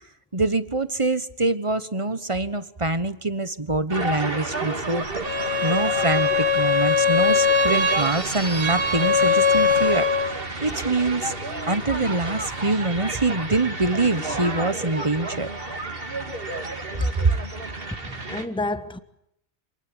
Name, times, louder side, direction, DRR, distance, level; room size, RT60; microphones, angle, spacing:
voice 1, 0.3-5.2 5.6-15.5 17.2-17.3, right 2 dB, 30° right, 1.3 m, -25 dB
sound 1, 3.9-18.4, right 2 dB, 60° right, 2.7 m, -32 dB
Bowed string instrument, 5.2-10.4, left 4 dB, 75° right, 2.9 m, -21 dB
voice 2, 18.0-19.0, left 1 dB, 5° left, 1.4 m, -28 dB
27.5 x 21.0 x 8.8 m
omnidirectional pair, 1.1 m